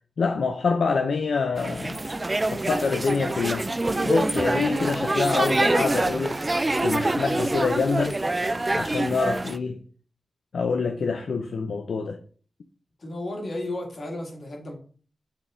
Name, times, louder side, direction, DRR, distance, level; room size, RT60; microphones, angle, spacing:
voice 1, 0.2-2.0 2.5-3.7 4.0-6.4 6.8-8.2 8.7-9.8 10.5-12.2, left 4 dB, 70° left, 0.5 m, -26 dB
sound 1, 1.6-9.6, right 2 dB, 20° right, 0.3 m, -25 dB
voice 2, 13.0-14.8, left 1 dB, 50° left, 1.9 m, -33 dB
7.3 x 3.5 x 3.7 m
wide cardioid pair, 125°, 0 cm